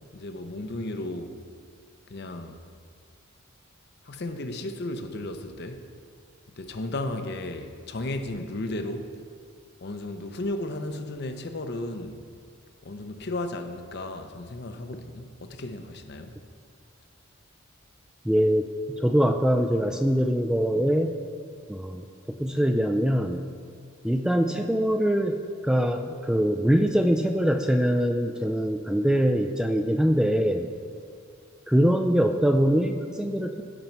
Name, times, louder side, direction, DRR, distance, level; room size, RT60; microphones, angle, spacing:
voice 1, 0.1-1.3 2.1-2.6 4.0-5.9 6.5-9.2 9.8-12.3 12.8-16.4, left 2 dB, 55° left, 0.7 m, -34 dB
voice 2, 18.2-21.2 21.7-23.5 24.0-30.7 31.7-33.6, equal, 5° right, 0.3 m, -23 dB
16.5 x 5.4 x 4.5 m
head